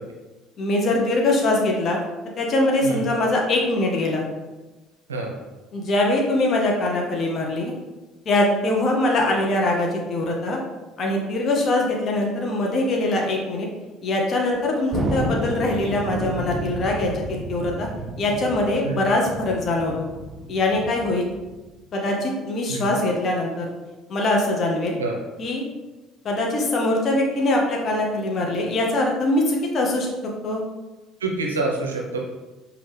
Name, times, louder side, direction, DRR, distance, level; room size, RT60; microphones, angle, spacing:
voice 1, 0.6-2.0 2.4-4.2 5.7-7.7 8.3-10.6 11.0-13.7 14.0-17.9 18.2-20.1 20.5-21.3 21.9-23.7 24.1-25.0 25.4-25.6 26.2-30.1 30.4-30.6, left 2 dB, 45° left, 0 dB, 0.7 m, -22 dB
Thunder, 14.9-21.8, right 1 dB, 15° right, 1.2 m, -31 dB
voice 2, 31.2-32.2, right 3 dB, 80° right, 0 dB, 0.4 m, -26 dB
5.1 x 2.3 x 3.3 m, 1.2 s
figure-of-eight pair, 55°, 0 cm